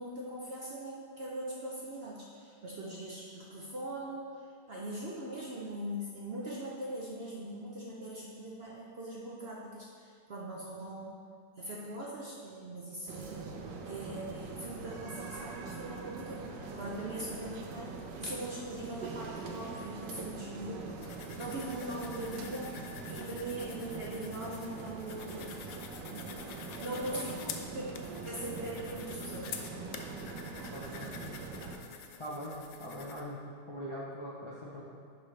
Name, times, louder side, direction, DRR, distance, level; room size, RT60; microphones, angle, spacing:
voice 1, 0.0-4.4 4.7-11.1 11.6-13.5 13.8-21.0 21.4-25.5 26.8-27.4 27.7-28.0 28.2-29.6, right 1 dB, 55° right, -4 dB, 0.6 m, -41 dB
sound 1, 13.1-31.8, right 4 dB, 75° right, 1.3 m, -43 dB
sound 2, 21.0-33.2, left 6 dB, 85° left, 1.3 m, -48 dB
voice 2, 30.7-31.1 32.2-34.8, equal, 45° left, -6 dB, 0.3 m, -42 dB
11.0 x 4.3 x 3.2 m, 2.2 s
omnidirectional pair, 1.9 m